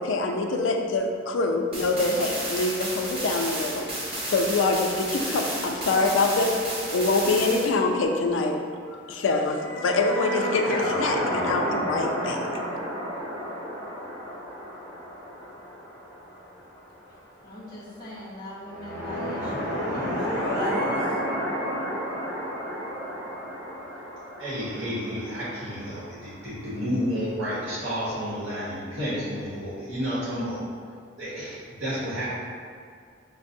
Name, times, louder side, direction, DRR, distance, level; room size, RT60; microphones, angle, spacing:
voice 1, 0.0-6.5 6.9-8.6 9.1-12.4, left 3 dB, 75° left, 3 dB, 0.4 m, -25 dB
sound 1, 1.7-7.7, right 1 dB, 30° right, 0.8 m, -32 dB
sound 2, 9.5-16.8 18.6-26.4, equal, 5° right, 1.0 m, -31 dB
voice 2, 17.4-21.0, equal, 20° left, -7 dB, 0.7 m, -38 dB
voice 3, 24.4-30.6 31.2-32.3, equal, 70° right, -9 dB, 0.9 m, -31 dB
5.1 x 2.0 x 2.6 m, 2.2 s
head